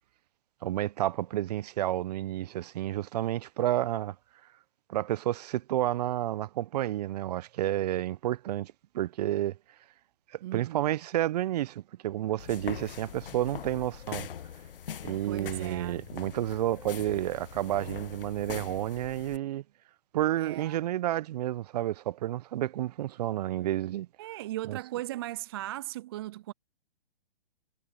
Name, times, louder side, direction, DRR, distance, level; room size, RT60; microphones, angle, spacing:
voice 1, 0.6-4.2 4.9-9.6 10.3-14.3 15.0-19.6 20.1-24.1 24.7-24.8, right 13 dB, 40° right, 0.8 m, -30 dB
voice 2, 10.4-11.0 15.2-16.0 20.4-20.8 24.2-26.5, right 15 dB, 25° right, 0.4 m, -38 dB
sound 1, 12.4-19.4, left 9 dB, 65° left, 1.4 m, -42 dB
figure-of-eight pair, 130°, 30 cm